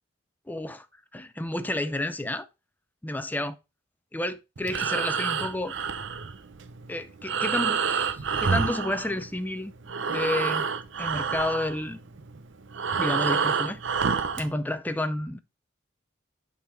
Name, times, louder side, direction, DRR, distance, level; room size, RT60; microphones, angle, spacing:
voice 1, 0.5-0.9 1.1-2.5 3.0-3.6 4.1-5.7 6.9-9.7 10.1-10.7 11.0-12.0 13.0-13.8 14.4-15.4, left 1 dB, 10° left, 0.5 m, -30 dB
Breathing, 4.6-9.6 9.8-14.5, right 6 dB, 70° right, 0.7 m, -28 dB
8.8 x 4.0 x 4.3 m
head